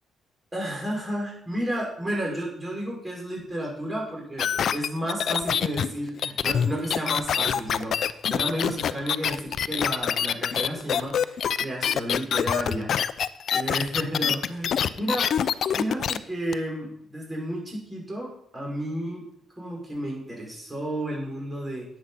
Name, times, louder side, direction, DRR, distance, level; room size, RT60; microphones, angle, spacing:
voice 1, 0.5-12.9 13.5-15.3 15.7-19.2 19.6-21.9, equal, 20° right, -2 dB, 6.2 m, -32 dB
sound 1, 4.4-16.2 16.5-16.6, left 8 dB, 60° left, 0.6 m, -25 dB
10.5 x 8.7 x 5.9 m, 0.73 s
cardioid pair, 90°, 0 cm